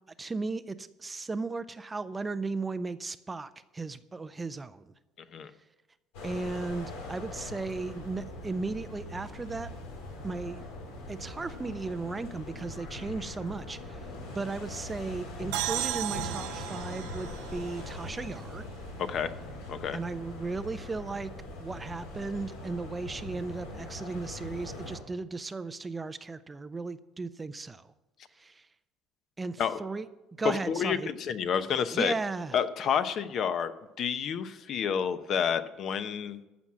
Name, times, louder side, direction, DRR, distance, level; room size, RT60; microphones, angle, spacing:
voice 1, 0.2-4.9 6.2-9.7 10.2-10.6 11.1-18.7 19.9-21.3 21.6-27.9 28.3-28.7 29.4-30.1 30.4-31.1 31.9-32.6, right 3 dB, 15° right, 13 dB, 0.4 m, -36 dB
sound 1, 6.1-25.0, left 2 dB, 90° left, 3.7 m, -42 dB
sound 2, 15.5-19.1, right 15 dB, 80° right, 0.7 m, -36 dB
voice 2, 30.7-32.1 32.5-33.7 34.0-36.4, left 7 dB, 45° left, 12 dB, 0.8 m, -29 dB
14.5 x 6.2 x 7.4 m, 1.0 s
cardioid pair, 135°, 0 cm